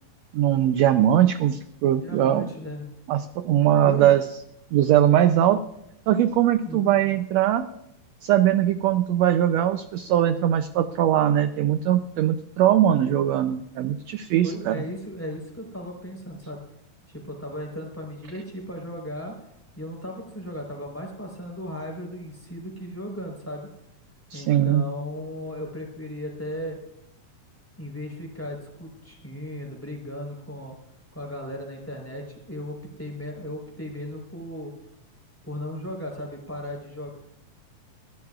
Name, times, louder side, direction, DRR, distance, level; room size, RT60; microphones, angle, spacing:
voice 1, 0.3-2.5 3.1-4.2 4.7-5.6 6.1-7.6 8.2-14.8 24.3-24.8, right 11 dB, 75° right, 9 dB, 1.6 m, -21 dB
voice 2, 2.0-2.9 3.5-4.2 6.6-7.1 14.4-16.6 17.1-19.3 19.8-23.7 24.3-26.8 27.8-30.7 31.1-34.7 35.4-37.2, equal, 5° left, 1 dB, 3.8 m, -36 dB
21.5 x 15.5 x 2.5 m, 0.81 s
omnidirectional pair, 3.6 m